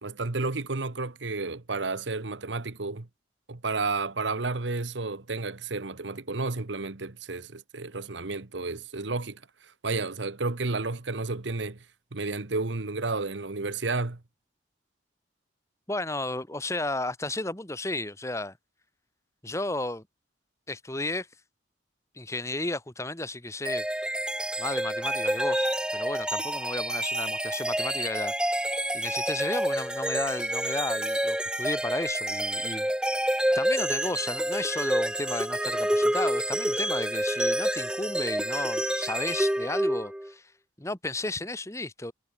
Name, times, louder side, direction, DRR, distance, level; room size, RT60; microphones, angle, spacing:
voice 1, 0.0-3.1 3.5-11.8 12.1-14.2, right 3 dB, 85° right, 1.3 m, -31 dB
voice 2, 15.9-18.6 19.4-20.0 20.7-21.3 22.1-23.8 24.6-28.6 28.9-32.9 33.5-40.5 40.8-42.1, left 2 dB, 15° left, 1.7 m, -33 dB
sound 1, 23.7-40.3, right 1 dB, 5° right, 1.7 m, -28 dB
head